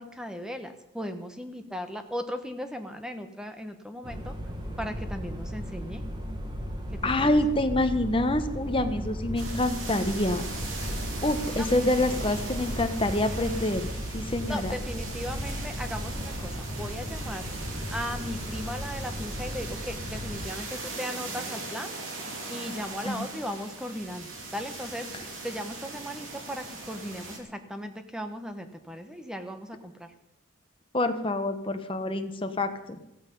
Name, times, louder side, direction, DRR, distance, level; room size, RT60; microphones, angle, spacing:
voice 1, 0.0-4.3 4.8-6.0 7.2-7.3 14.5-17.4 17.9-21.9 22.5-25.1 25.4-30.1, equal, 5° right, 7 dB, 1.1 m, -37 dB
sound 1, 4.0-20.4, equal, 20° right, 1.6 m, -36 dB
voice 2, 7.0-10.4 11.2-14.7 23.0-23.3 30.9-33.0, left 1 dB, 25° left, 8 dB, 1.1 m, -27 dB
sound 2, 9.4-27.4, right 3 dB, 80° right, 3.0 m, -39 dB
15.0 x 14.0 x 5.4 m, 0.87 s
head